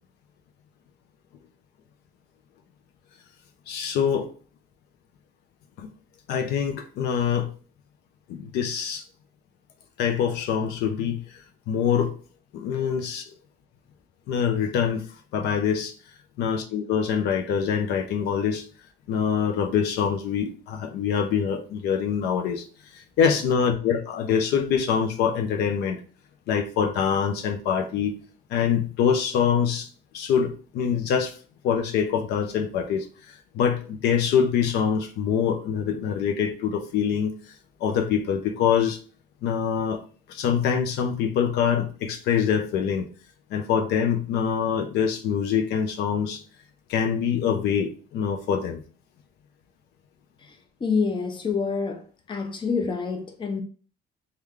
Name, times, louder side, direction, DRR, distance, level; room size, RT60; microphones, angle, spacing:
voice 1, 3.7-4.3 5.8-5.9 6.3-7.5 8.3-9.0 10.0-12.1 12.5-13.3 14.3-15.1 15.3-15.9 16.4-18.7 19.1-22.6 22.9-26.0 26.5-28.1 28.5-29.9 30.1-31.4 31.6-39.0 39.4-40.0 40.3-43.1 43.5-46.4 46.9-48.8, left 7 dB, 80° left, 0.6 m, -25 dB
voice 2, 50.5-52.0 52.3-53.6, left 5 dB, 30° left, 0.7 m, -27 dB
3.2 x 2.3 x 3.6 m
cardioid pair, 110°, 17 cm